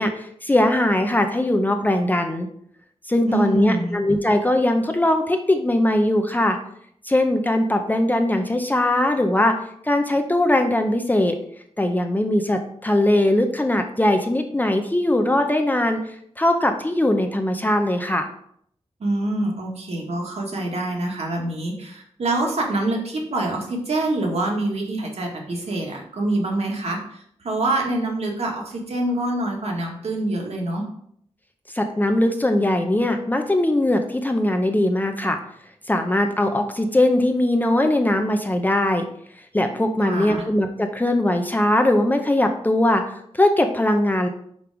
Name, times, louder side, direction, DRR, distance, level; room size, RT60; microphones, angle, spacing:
voice 1, 0.0-2.5 3.1-6.6 7.0-9.6 9.8-11.4 11.8-16.0 16.4-18.3 31.7-35.4 35.9-39.0 39.5-44.3, left 1 dB, 15° left, 5 dB, 0.6 m, -20 dB
voice 2, 3.3-4.0 19.0-30.8 40.0-40.4, right 2 dB, 70° right, -1 dB, 1.7 m, -25 dB
5.2 x 4.6 x 4.8 m, 0.67 s
wide cardioid pair, 120°, 11 cm